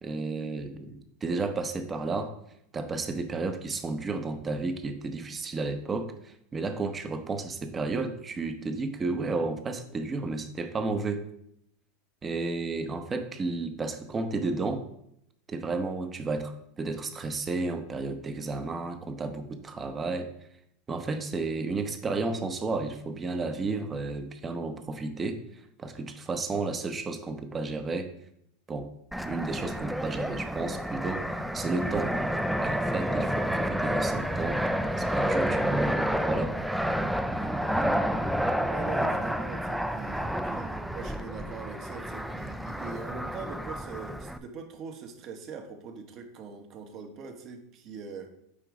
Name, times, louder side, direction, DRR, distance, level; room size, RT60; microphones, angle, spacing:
voice 1, 0.0-2.3 2.7-11.2 12.2-14.8 15.5-20.3 20.9-25.4 25.8-28.1 28.7-28.9 29.2-32.1 32.6-36.5, right 3 dB, 20° right, 8 dB, 0.7 m, -32 dB
Fixed-wing aircraft airplane, 29.1-44.4, equal, ahead, 0.4 m, -30 dB
voice 2, 38.7-48.3, right 5 dB, 40° right, 6 dB, 1.0 m, -42 dB
8.5 x 3.0 x 4.8 m, 0.75 s
supercardioid pair, 125°, 0 cm